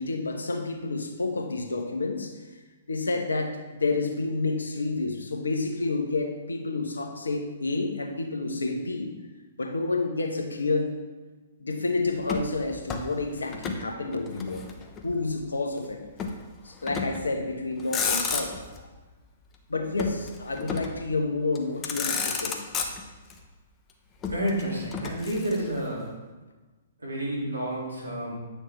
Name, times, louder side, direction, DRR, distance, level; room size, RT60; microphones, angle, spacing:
voice 1, 0.0-2.3 2.9-9.1 9.6-11.0 11.6-14.7 15.0-16.0 16.6-18.6 19.7-22.6, left 3 dB, 80° left, 4 dB, 1.0 m, -29 dB
Motor vehicle (road), 12.2-13.9 14.1-15.2 16.2-16.4 16.9-17.3 17.7-18.8 20.0-21.0 21.6-21.7 21.8-23.3 24.2-25.9, left 5 dB, 25° left, 0.8 m, -32 dB
voice 2, 24.3-26.1 27.0-28.3, right 1 dB, 85° right, -3 dB, 2.3 m, -30 dB
9.2 x 6.4 x 3.2 m, 1.3 s
figure-of-eight pair, 120°, 0 cm